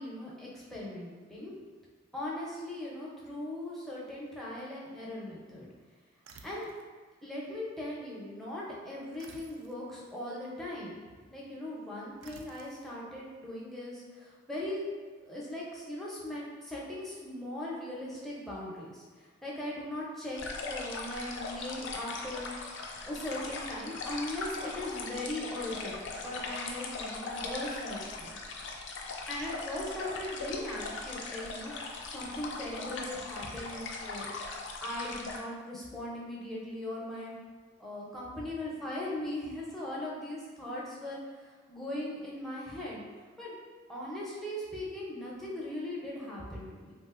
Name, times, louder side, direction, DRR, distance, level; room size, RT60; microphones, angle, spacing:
voice 1, 0.0-1.6 2.1-5.7 6.4-6.7 7.2-11.0 11.3-14.9 15.2-20.4 20.7-22.5 23.1-28.4 29.3-34.3 34.8-37.4 37.8-43.0 43.4-43.6 43.9-46.9, left 1 dB, ahead, -6 dB, 0.6 m, -39 dB
sound 1, 6.2-6.9 9.2-9.8 12.2-12.9, right 4 dB, 75° right, 0.3 m, -54 dB
sound 2, 20.4-35.4, left 3 dB, 65° left, 0.4 m, -40 dB
3.3 x 2.4 x 2.4 m, 1.5 s
head